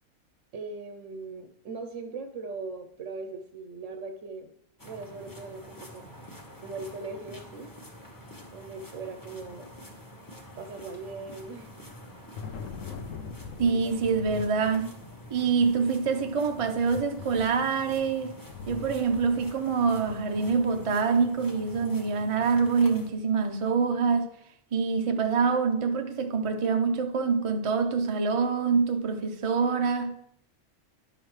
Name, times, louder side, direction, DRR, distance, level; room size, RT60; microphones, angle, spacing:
voice 1, 0.5-4.5 4.8-6.0 6.6-7.7 8.5-9.7 10.6-11.8 13.6-14.0, right 3 dB, 60° right, 1.0 m, -40 dB
sound 1, 4.8-23.1, equal, 15° left, 1.1 m, -47 dB
Thunder, 11.7-21.2, left 5 dB, 65° left, 1.0 m, -43 dB
voice 2, 13.6-14.9 15.3-18.3 18.7-24.3 24.7-30.2, right 5 dB, 40° right, 0.4 m, -25 dB
11.0 x 6.1 x 3.2 m
omnidirectional pair, 1.5 m